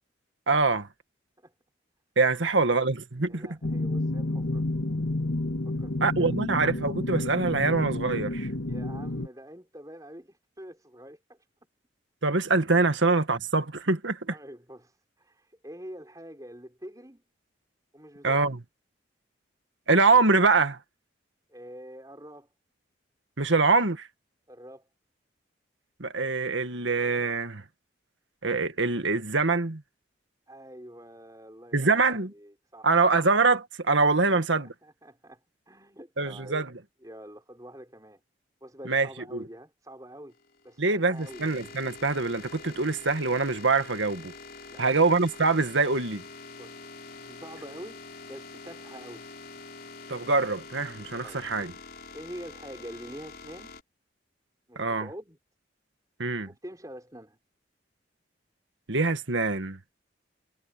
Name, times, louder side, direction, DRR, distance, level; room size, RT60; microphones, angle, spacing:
voice 1, 0.5-0.9 2.2-3.5 6.0-8.5 12.2-14.3 18.2-18.6 19.9-20.8 23.4-24.1 26.0-27.6 28.4-29.8 31.7-32.3 32.8-34.7 36.2-36.7 38.9-39.4 40.8-44.3 44.8-46.2 50.1-51.7 54.8-55.1 56.2-56.5 58.9-59.8, right 3 dB, 80° right, 1.9 m, -24 dB
voice 2, 3.3-4.6 5.6-6.3 8.7-11.5 14.3-17.2 17.9-18.5 21.5-22.5 24.5-24.8 30.5-33.0 34.2-35.4 35.7-36.6 37.0-38.2 38.6-40.3 40.6-41.5 44.7-45.0 46.6-48.0 48.3-49.2 51.2-51.7 52.1-53.7 54.7-55.4 56.5-57.4, equal, 20° right, 6.1 m, -46 dB
sound 1, 3.6-9.3, left 2 dB, 85° left, 1.8 m, -30 dB
sound 2, 40.3-53.8, left 4 dB, 50° left, 5.1 m, -46 dB
head